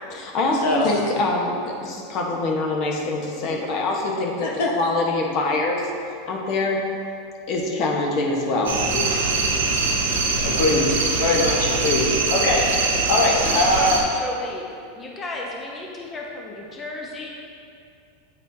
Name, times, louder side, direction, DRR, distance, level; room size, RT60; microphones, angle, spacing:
voice 1, 0.1-5.9 6.2-6.8 7.5-8.8, left 2 dB, 50° left, 0 dB, 1.1 m, -24 dB
sound 1, 8.7-14.0, right 4 dB, 80° right, 1.0 m, -23 dB
voice 2, 8.9-9.3 10.1-10.2 10.4-14.0, left 2 dB, 70° left, -2 dB, 0.8 m, -22 dB
voice 3, 13.5-17.3, left 2 dB, 25° left, -2 dB, 0.8 m, -34 dB
8.8 x 4.2 x 2.7 m, 2.5 s
hypercardioid pair, 105°, 0 cm